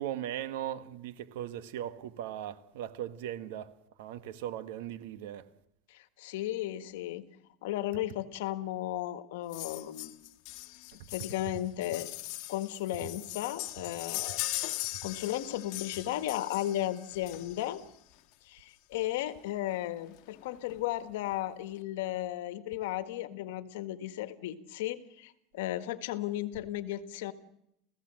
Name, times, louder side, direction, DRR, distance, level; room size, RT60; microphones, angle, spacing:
voice 1, 0.0-3.7 4.0-5.4, right 11 dB, 80° right, 1.5 m, -38 dB
voice 2, 5.9-7.3 7.6-10.1 11.1-12.1 12.5-14.4 15.0-17.8 18.5-27.3, left 14 dB, 85° left, 1.6 m, -35 dB
sound 1, 9.5-17.8 18.9-19.0 19.3-19.4 19.7-19.8 20.2-20.8 21.3-21.4, left 18 dB, 60° left, 1.9 m, -40 dB
29.0 x 16.5 x 7.7 m
supercardioid pair, 130°, 0 cm